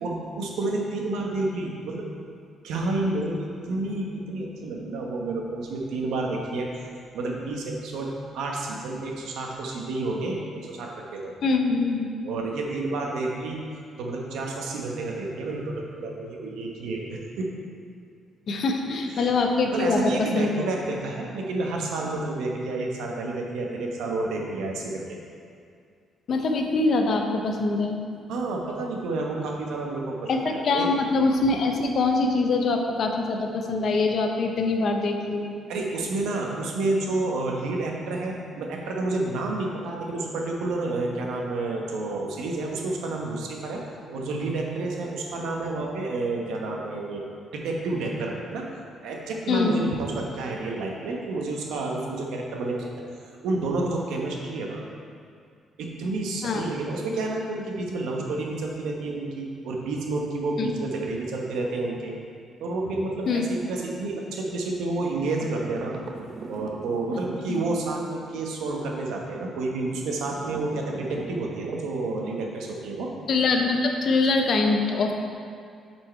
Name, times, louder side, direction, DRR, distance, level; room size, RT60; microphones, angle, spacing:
voice 1, 0.0-2.1 2.6-6.9 7.1-11.4 12.2-13.6 14.0-17.5 19.1-19.3 19.7-25.2 28.3-30.9 35.7-43.8 44.1-47.2 47.5-48.7 49.0-52.8 53.3-54.8 55.8-62.2 62.6-65.9 66.5-73.1, right 2 dB, 90° right, -1 dB, 1.0 m, -30 dB
voice 2, 11.4-12.1 18.5-20.5 26.3-28.0 30.3-35.5 49.5-49.8 56.4-56.6 60.6-60.7 63.3-63.5 67.5-67.6 73.3-75.1, left 3 dB, 50° left, 3 dB, 0.7 m, -24 dB
sound 1, 65.4-68.0 70.0-72.3, right 3 dB, 45° right, 0.7 m, -40 dB
7.8 x 4.6 x 4.4 m, 2.3 s
cardioid pair, 145°, 0 cm